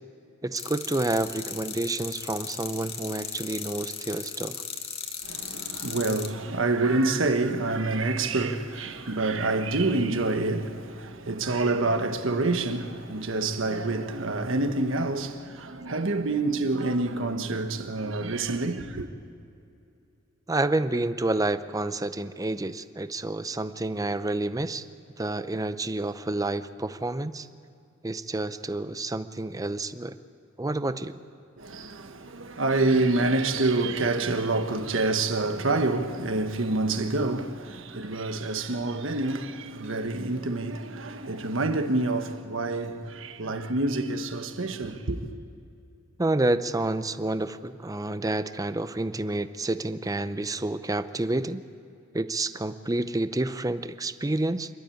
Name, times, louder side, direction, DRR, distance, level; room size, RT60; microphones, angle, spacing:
voice 1, 0.4-4.6 20.5-24.9 25.2-27.5 28.0-30.2 30.6-31.1 43.4-43.6 46.2-51.6 52.1-54.7, right 2 dB, 20° right, 0.6 m, -29 dB
sound 1, 0.6-6.3, left 6 dB, 30° left, 1.5 m, -37 dB
voice 2, 5.2-19.1 31.6-45.3, right 2 dB, 75° right, 1.4 m, -27 dB
28.0 x 12.5 x 8.6 m
head